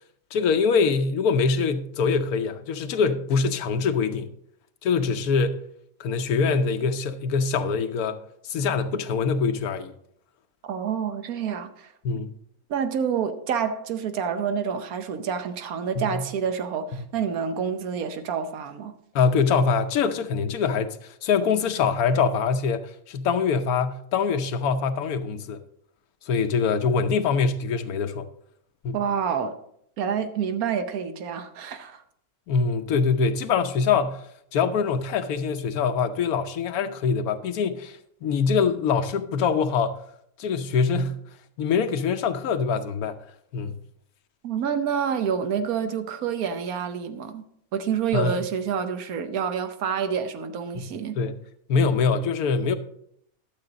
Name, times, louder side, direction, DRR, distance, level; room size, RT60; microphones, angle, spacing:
voice 1, 0.3-4.3 4.8-5.7 6.0-9.9 12.0-12.3 16.0-16.3 19.1-25.6 26.2-28.3 28.8-29.0 32.5-34.2 34.5-40.0 40.4-41.2 41.6-43.2 43.5-43.8 48.1-48.4 50.7-50.9 51.1-51.4 51.7-52.8, left 5 dB, 85° left, 1.2 m, -24 dB
voice 2, 10.6-11.9 12.7-18.9 28.9-29.6 30.0-32.0 44.4-47.4 47.7-51.2, right 7 dB, 85° right, 1.3 m, -28 dB
11.5 x 7.5 x 3.9 m
omnidirectional pair, 1.5 m